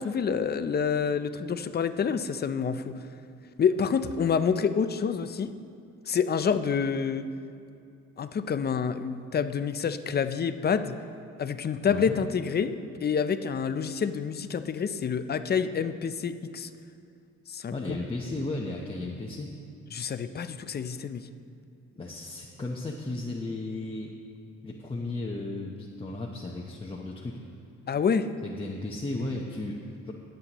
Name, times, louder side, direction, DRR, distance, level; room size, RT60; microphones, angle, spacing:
voice 1, 0.0-3.0 3.6-5.5 6.1-7.3 8.2-11.0 11.4-12.7 13.0-16.7 17.5-18.0 19.9-21.3 27.9-28.3, left 6 dB, 35° left, 11 dB, 0.5 m, -28 dB
voice 2, 11.9-12.2 17.7-19.5 22.0-24.1 24.6-27.4 28.4-30.1, left 2 dB, 20° left, -3 dB, 0.9 m, -35 dB
19.5 x 7.8 x 3.0 m, 2.4 s
cardioid pair, 90°, 30 cm